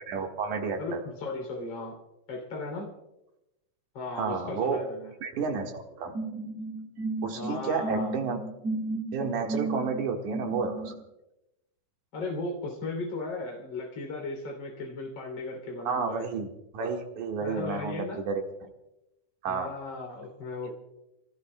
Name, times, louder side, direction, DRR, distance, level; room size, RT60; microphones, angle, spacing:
voice 1, 0.1-1.0 4.2-4.9 5.2-6.1 7.2-8.4 9.1-10.9 15.8-18.7 19.4-19.7, right 5 dB, 70° right, 2 dB, 2.9 m, -31 dB
voice 2, 0.8-2.0 2.3-2.9 3.9-5.1 7.3-8.2 12.1-16.3 17.4-18.2 19.5-20.7, left 3 dB, 35° left, 1 dB, 3.5 m, -36 dB
sound 1, 6.1-10.9, right 2 dB, 25° right, 6.4 m, -33 dB
27.5 x 18.0 x 2.2 m, 0.92 s
omnidirectional pair, 3.8 m